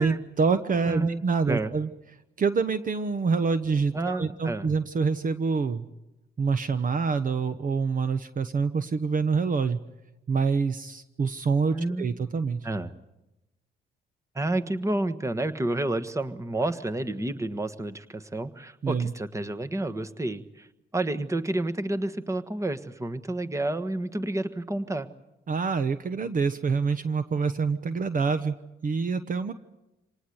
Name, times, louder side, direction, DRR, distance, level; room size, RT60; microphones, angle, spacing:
voice 1, 0.0-1.9 2.4-5.9 6.4-9.8 10.3-12.7 18.8-19.1 25.5-28.5 28.8-29.5, right 5 dB, 45° right, 11 dB, 1.1 m, -26 dB
voice 2, 0.8-1.7 3.9-4.7 11.7-12.1 12.6-12.9 14.3-20.7 20.9-25.1, right 2 dB, 15° right, 9 dB, 1.4 m, -30 dB
26.5 x 19.0 x 8.1 m, 0.96 s
cardioid pair, 80°, 19 cm